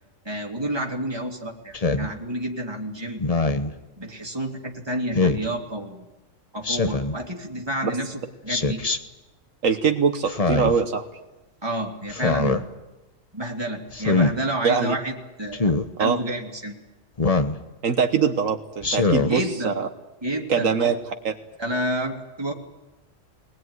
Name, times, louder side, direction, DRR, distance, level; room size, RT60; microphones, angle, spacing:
voice 1, 0.2-3.2 4.0-6.1 6.5-8.8 11.6-12.7 13.3-16.8 19.2-19.8 20.2-20.8 21.6-22.5, right 1 dB, 20° right, 1 dB, 2.6 m, -30 dB
Speech synthesizer, 1.7-2.1 3.2-3.7 5.1-5.5 6.6-7.2 8.5-9.0 10.3-10.8 12.1-12.6 13.9-14.3 15.5-15.9 17.2-17.6 18.8-19.3, left 3 dB, 30° left, 1.1 m, -22 dB
voice 2, 9.6-11.0 14.6-14.9 16.0-16.2 17.8-19.9 20.5-21.0 21.2-21.4, right 6 dB, 75° right, 6 dB, 1.6 m, -22 dB
23.0 x 19.5 x 9.6 m, 1.1 s
omnidirectional pair, 1.4 m